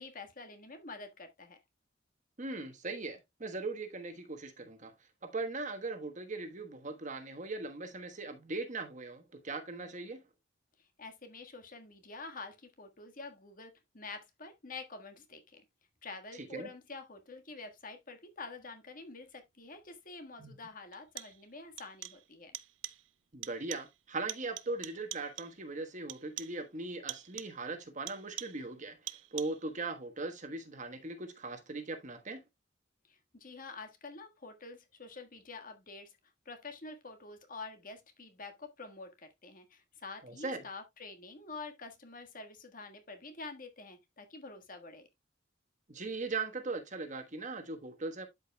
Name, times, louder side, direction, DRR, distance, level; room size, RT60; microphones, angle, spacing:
voice 1, 0.0-1.6 11.0-15.6 16.0-22.5 33.1-36.1 36.4-45.1, left 3 dB, 50° left, 1.6 m, -47 dB
voice 2, 2.4-4.9 5.2-10.2 16.4-16.7 20.4-20.5 23.3-32.4 40.2-40.7 45.9-48.3, right 3 dB, 40° right, 1.3 m, -39 dB
sound 1, 19.9-20.0 20.9-21.5 21.8-22.3 22.5-23.1 23.4-24.0 24.3-25.6 26.1-26.7 27.1-27.6 28.1-28.7 29.1-29.7, right 15 dB, 80° right, 0.5 m, -45 dB
12.0 x 5.2 x 2.3 m
head